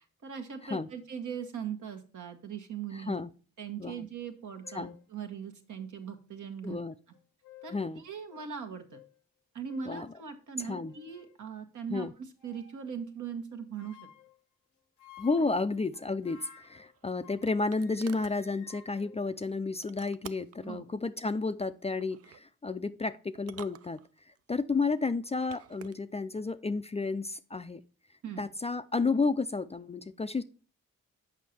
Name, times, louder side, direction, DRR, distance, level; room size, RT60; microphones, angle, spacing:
voice 1, 0.2-3.2 3.6-6.8 7.6-9.0 9.5-14.0 15.5-15.6 20.6-20.9 28.2-28.4, right 7 dB, 65° right, 6 dB, 1.2 m, -40 dB
voice 2, 2.9-3.3 3.8-4.0 4.7-4.9 6.6-6.9 7.7-8.0 9.9-10.1 10.7-10.9 11.9-12.1 15.2-24.0 24.5-27.8 28.4-30.4, left 3 dB, 20° left, 11 dB, 0.4 m, -32 dB
sound 1, 4.2-4.3 4.6-5.0 5.8-5.9 7.1-7.9 8.3-8.5 8.9-9.1 9.7-10.0 10.6-11.4 12.4-12.8 13.8-14.4 15.0-17.5 17.7-20.0, left 9 dB, 85° left, 0.9 m, -55 dB
sound 2, 16.6-18.4 19.8-20.6 22.0-22.4 23.3-24.4 25.2-26.0, right 10 dB, 50° right, 0.4 m, -49 dB
6.4 x 5.2 x 4.3 m, 0.38 s
supercardioid pair, 50°, 32 cm